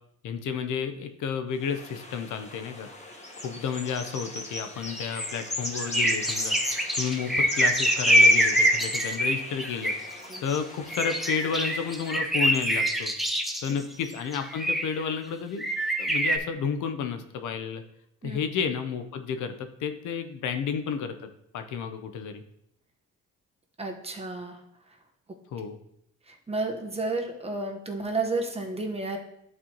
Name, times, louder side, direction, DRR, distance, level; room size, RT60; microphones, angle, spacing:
voice 1, 0.2-2.9 3.4-6.6 7.0-9.9 10.4-13.1 13.6-15.7 16.0-17.8 18.2-21.1 21.5-22.4 25.5-25.8, left 6 dB, 80° left, 8 dB, 0.7 m, -31 dB
sound 1, 1.6-12.1, left 1 dB, 20° left, 1.3 m, -37 dB
sound 2, 4.9-5.4 5.8-10.6 10.9-13.7 14.3-15.0 15.6-16.4, equal, ahead, 0.7 m, -25 dB
voice 2, 23.8-24.6 25.3-25.4 26.3-29.2, right 3 dB, 20° right, 2 dB, 1.1 m, -31 dB
11.0 x 4.4 x 2.9 m, 0.79 s
cardioid pair, 90°, 30 cm